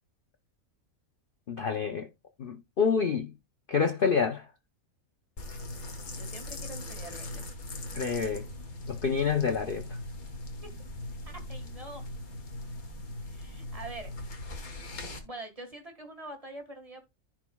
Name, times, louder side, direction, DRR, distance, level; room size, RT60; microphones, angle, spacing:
voice 1, 1.5-2.1 2.4-3.3 3.7-4.4 7.9-8.4 8.9-10.0, left 6 dB, 50° left, 0.7 m, -27 dB
sound 1, 5.4-15.2, left 1 dB, 75° left, 1.9 m, -40 dB
voice 2, 6.1-7.4 10.6-10.7 11.2-12.0 13.2-14.5 15.2-17.0, right 2 dB, 25° right, 1.7 m, -45 dB
14.5 x 4.8 x 2.3 m
omnidirectional pair, 1.5 m